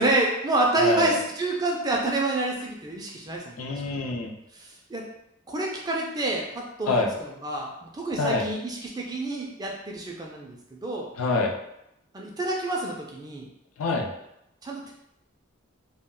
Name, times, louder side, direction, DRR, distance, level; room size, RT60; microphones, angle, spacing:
voice 1, 0.0-3.8 4.6-5.1 5.5-11.1 12.1-13.5 14.6-14.9, right 2 dB, 20° right, -1 dB, 0.3 m, -28 dB
voice 2, 0.8-1.2 3.6-4.3 6.9-7.1 8.2-8.5 11.2-11.5 13.8-14.1, left 3 dB, 90° left, 2 dB, 0.4 m, -25 dB
2.2 x 2.1 x 3.6 m, 0.83 s
head